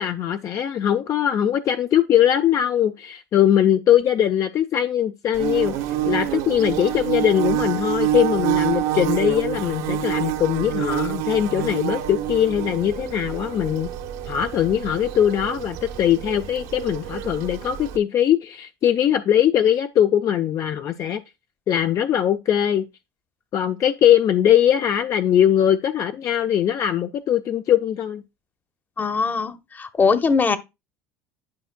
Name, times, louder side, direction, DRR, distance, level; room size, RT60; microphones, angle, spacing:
voice 1, 0.0-5.7 6.1-13.9 14.3-21.2 21.7-22.9 23.5-28.2, left 10 dB, 45° left, 0.6 m, -21 dB
Bird / Buzz, 5.3-18.0, right 11 dB, 80° right, 1.3 m, -27 dB
voice 2, 29.0-30.6, left 5 dB, 25° left, 1.0 m, -21 dB
10.5 x 5.6 x 2.2 m
supercardioid pair, 110°, 8 cm